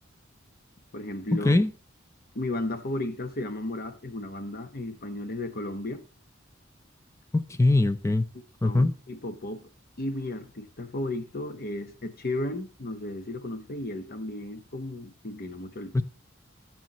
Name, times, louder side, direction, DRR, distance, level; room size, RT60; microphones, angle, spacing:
voice 1, 0.9-1.5 2.3-6.0 8.6-9.7 10.0-16.0, left 1 dB, 50° left, 1.0 m, -34 dB
voice 2, 7.3-8.3 8.6-8.9 15.9-16.0, left 2 dB, 15° left, 0.5 m, -22 dB
13.5 x 7.3 x 3.0 m
head